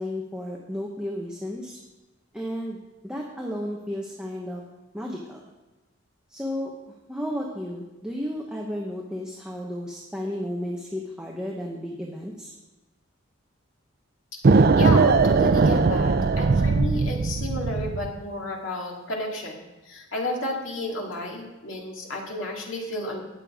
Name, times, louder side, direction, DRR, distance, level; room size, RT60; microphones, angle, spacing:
voice 1, 0.0-1.8 2.3-2.8 3.0-4.6 4.9-5.5 6.3-6.7 7.1-12.5, equal, 5° right, -2 dB, 1.1 m, -33 dB
sound 1, 14.4-18.2, right 4 dB, 45° right, 0.4 m, -19 dB
voice 2, 14.8-23.2, left 1 dB, 65° left, -1 dB, 2.3 m, -32 dB
19.5 x 6.8 x 3.7 m, 1.1 s
head